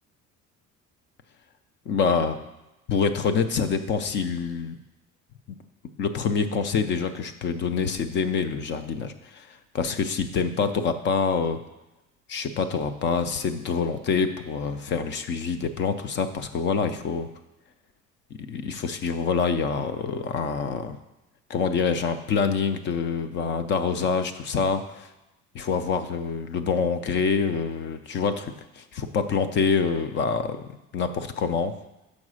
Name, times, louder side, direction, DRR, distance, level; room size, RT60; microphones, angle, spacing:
voice 1, 1.9-2.4 2.9-4.8 5.5-5.6 6.0-11.6 12.3-17.3 18.5-21.0 21.5-25.1 25.5-30.7 30.9-31.7, left 5 dB, 35° left, 10 dB, 0.4 m, -26 dB
6.3 x 4.8 x 6.2 m, 0.97 s
cardioid pair, 175°, 31 cm